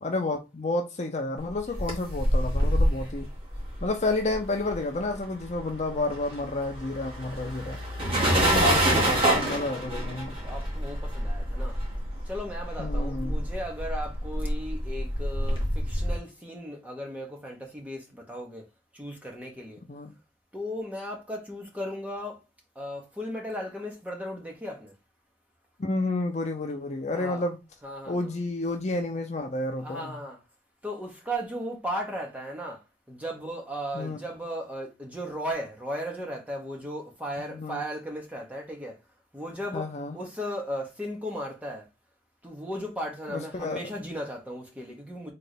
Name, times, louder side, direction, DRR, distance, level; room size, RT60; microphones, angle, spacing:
voice 1, 0.0-3.3 3.8-7.8 8.4-10.3 12.8-13.5 19.9-20.1 25.8-27.6 28.1-30.2 33.9-34.2 37.5-37.8 39.7-40.2 43.3-43.8, left 2 dB, 40° left, 0.7 m, -30 dB
sound 1, 1.5-5.2 5.4-16.2, equal, 30° right, 2.1 m, -27 dB
voice 2, 8.0-9.0 10.4-11.8 12.3-18.6 18.9-19.8 20.5-22.4 22.7-24.9 27.1-27.5 27.8-28.4 29.8-30.4 30.8-32.8 33.1-39.0 39.3-41.9 42.4-45.3, equal, 10° right, 1.4 m, -36 dB
3.9 x 3.3 x 4.1 m
head